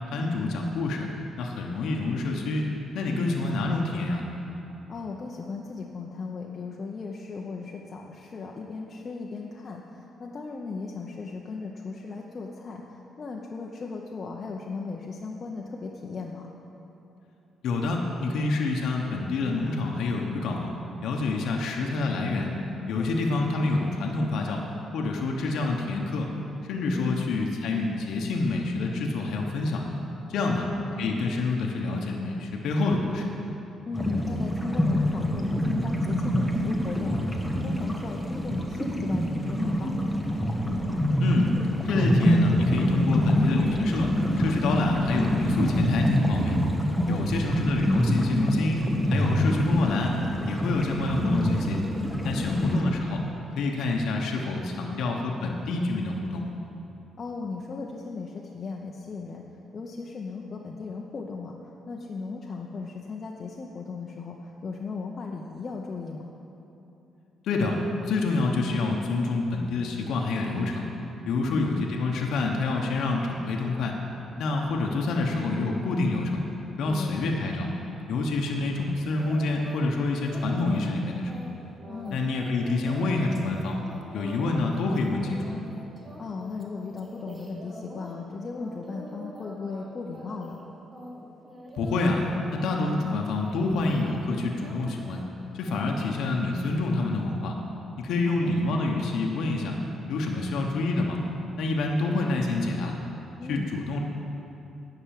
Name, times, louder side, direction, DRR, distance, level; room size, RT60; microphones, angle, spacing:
voice 1, 0.1-1.1 1.4-2.7 2.9-4.3 17.6-20.7 21.0-22.5 22.9-24.6 24.9-26.3 26.7-29.9 30.3-30.7 31.0-33.3 41.2-41.5 41.8-46.6 47.1-48.8 49.1-50.2 50.5-51.8 52.2-53.2 53.6-56.4 67.4-67.8 68.0-70.9 71.3-74.0 74.4-76.4 76.8-77.7 78.1-81.5 82.1-83.8 84.1-85.5 91.8-92.2 92.5-95.2 95.5-97.5 98.0-99.7 100.0-101.2 101.6-102.9 103.5-104.0, left 3 dB, 80° left, 0 dB, 1.0 m, -27 dB
voice 2, 4.9-16.5 22.9-23.1 26.9-27.2 30.4-30.7 33.8-40.1 46.9-47.3 52.4-52.6 57.2-59.5 59.7-66.2 71.4-71.7 76.9-77.2 81.9-82.2 86.2-90.6 98.2-98.5 103.4-103.7, left 4 dB, 40° left, -1 dB, 0.8 m, -37 dB
sound 1, 33.9-52.8, equal, ahead, 1.1 m, -26 dB
sound 2, 79.2-79.9 80.2-88.2 88.6-89.9 90.1-90.6 90.9-94.3 94.6-95.2 95.6-95.8, right 1 dB, 20° right, 1.7 m, -44 dB
10.0 x 6.0 x 7.6 m, 2.9 s
cardioid pair, 90°, 0 cm